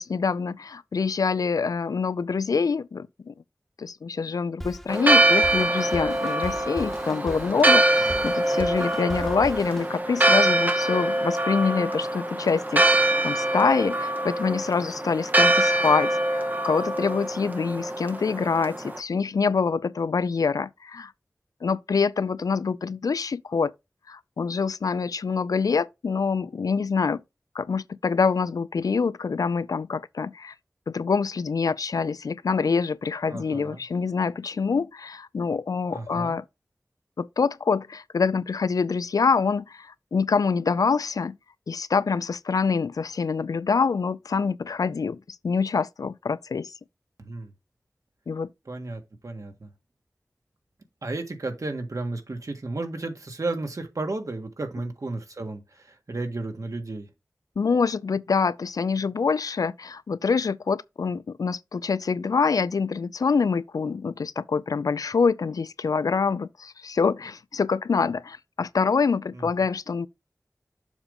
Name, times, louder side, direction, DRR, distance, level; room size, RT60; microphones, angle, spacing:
voice 1, 0.0-3.3 3.8-21.1 21.6-23.7 24.1-27.2 27.6-30.5 30.9-36.4 37.2-41.3 41.7-46.7 48.3-48.5 57.6-70.1, left 5 dB, 85° left, 0.4 m, -25 dB
Drum kit, 4.6-10.0, equal, 5° left, 1.0 m, -39 dB
Church bell, 4.9-19.0, right 1 dB, 30° right, 0.8 m, -24 dB
voice 2, 8.0-8.6 33.3-33.8 35.9-36.4 47.2-47.5 48.7-49.7 51.0-57.1 69.3-69.5, right 2 dB, 65° right, 1.6 m, -33 dB
7.1 x 3.5 x 5.3 m
cardioid pair, 40°, 6 cm